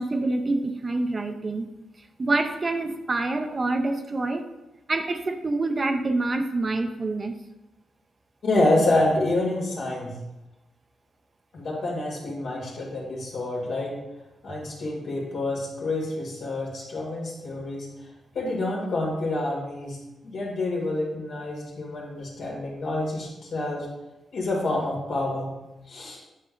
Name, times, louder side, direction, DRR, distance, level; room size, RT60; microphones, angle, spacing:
voice 1, 0.0-1.7 2.2-4.5 4.9-7.3, right 2 dB, 40° right, 6 dB, 0.6 m, -26 dB
voice 2, 8.4-10.1 11.5-14.0 14.4-17.9 18.3-20.0 20.2-23.9 24.3-25.6 25.9-26.2, left 2 dB, 70° left, -2 dB, 2.1 m, -27 dB
8.5 x 5.3 x 2.5 m, 0.99 s
cardioid pair, 75°, 0 cm